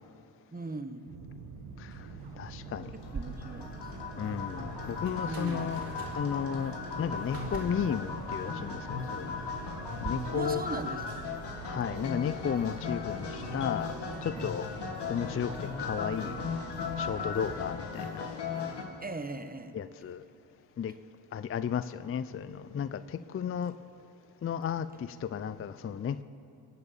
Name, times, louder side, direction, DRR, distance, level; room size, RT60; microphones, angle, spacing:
voice 1, 0.5-1.1 3.1-3.9 5.2-5.7 10.3-11.0 14.4-14.5 19.0-19.7, right 2 dB, 20° right, 1.2 m, -39 dB
sound 1, 1.1-17.8, right 4 dB, 75° right, 1.9 m, -45 dB
voice 2, 2.4-2.9 4.2-5.8 6.2-9.4 10.0-10.6 11.6-14.0 14.2-14.7 15.1-16.4 17.0-18.6 19.7-20.2 20.8-20.9 21.3-23.7 24.4-26.2, left 7 dB, 30° left, 0.5 m, -34 dB
sound 2, 2.6-18.8, left 5 dB, 55° left, 2.4 m, -37 dB
sound 3, 3.1-10.1, right 4 dB, 45° right, 3.6 m, -45 dB
22.0 x 8.3 x 7.4 m
supercardioid pair, 60°, 48 cm